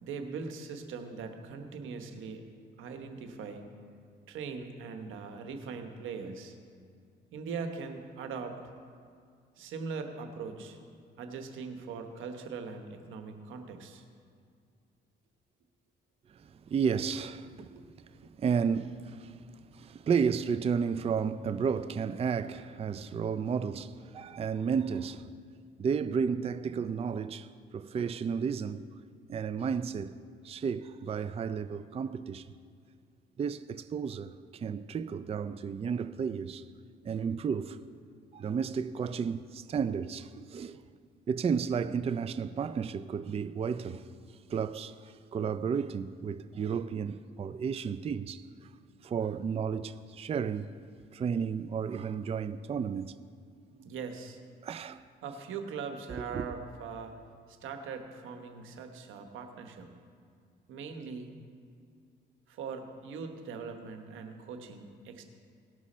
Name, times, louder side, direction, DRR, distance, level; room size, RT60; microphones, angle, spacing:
voice 1, 0.0-2.4 2.8-3.7 4.3-6.6 7.3-8.6 9.6-10.8 11.2-14.0 17.7-17.8 18.2-18.3 53.8-54.4 55.2-57.2 57.5-59.9 60.7-61.3 62.5-65.2, right 5 dB, 85° right, 1.1 m, -41 dB
voice 2, 16.3-17.7 18.4-19.4 19.7-25.3 25.8-28.9 29.3-30.1 30.4-32.5 33.4-36.6 37.0-37.8 38.3-40.8 41.3-44.0 44.5-48.7 49.0-50.7 51.1-53.1 54.6-55.0 56.3-56.5, right 6 dB, 30° right, 0.4 m, -32 dB
18.5 x 6.3 x 4.3 m
cardioid pair, 90°, 20 cm